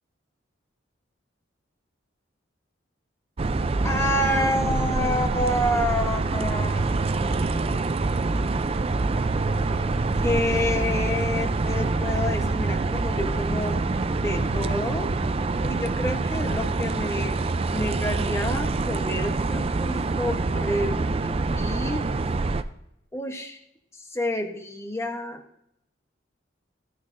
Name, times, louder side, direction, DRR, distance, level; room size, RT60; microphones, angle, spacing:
sound 1, 3.4-22.6, right 3 dB, 30° right, 0.4 m, -25 dB
voice 1, 3.8-7.9 10.2-13.8 14.1-15.1 15.6-17.4 17.7-22.1 23.1-23.6 23.9-25.4, left 1 dB, 15° left, 4 dB, 0.9 m, -29 dB
14.5 x 9.7 x 2.6 m, 0.78 s
head